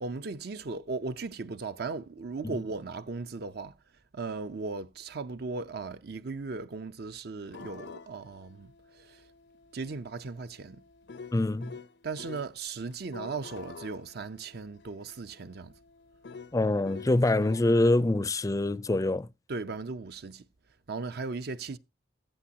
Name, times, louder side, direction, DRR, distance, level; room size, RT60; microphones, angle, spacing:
voice 1, 0.0-3.8 4.1-9.3 9.7-10.8 12.0-15.7 19.5-20.5 20.9-21.8, right 4 dB, 65° right, 0.6 m, -37 dB
sound 1, 7.5-12.5 12.9-17.6, left 4 dB, 80° left, 0.6 m, -48 dB
voice 2, 11.3-11.8 16.5-19.3, left 2 dB, 20° left, 0.4 m, -25 dB
14.5 x 7.8 x 2.8 m
head